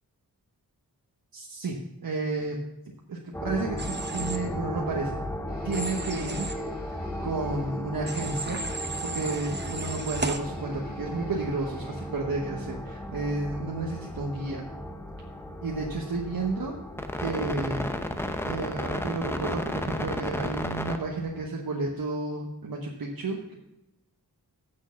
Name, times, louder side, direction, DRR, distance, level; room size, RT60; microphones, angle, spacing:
voice 1, 1.3-2.6 3.1-5.2 5.6-6.5 6.8-7.0 7.2-8.6 9.0-14.6 15.6-16.8 17.2-17.9 18.4-23.6, right 3 dB, 65° right, -1 dB, 1.1 m, -32 dB
sound 1, 3.3-21.5, left 1 dB, 5° left, 0.7 m, -34 dB
Human voice / Train, 3.8-4.4 5.7-6.5 8.1-10.4, right 3 dB, 25° right, 0.8 m, -35 dB
sound 2, 5.5-8.0 9.7-12.3, left 1 dB, 25° left, 2.4 m, -55 dB
8.6 x 6.5 x 5.7 m, 0.89 s
wide cardioid pair, 90°, 38 cm